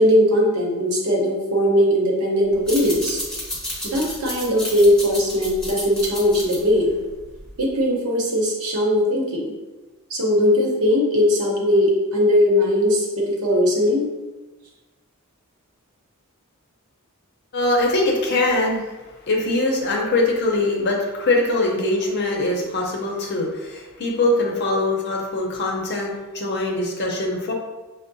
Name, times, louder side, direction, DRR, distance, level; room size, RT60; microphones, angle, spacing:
voice 1, 0.0-3.2 3.8-7.0 7.6-9.5 10.1-14.1, left 1 dB, 75° right, -2 dB, 0.8 m, -19 dB
sound 1, 2.5-7.7, equal, 5° left, 0.8 m, -32 dB
voice 2, 17.5-19.0 19.2-27.5, left 2 dB, 50° left, -1 dB, 0.7 m, -22 dB
5.5 x 2.0 x 2.6 m, 1.2 s
head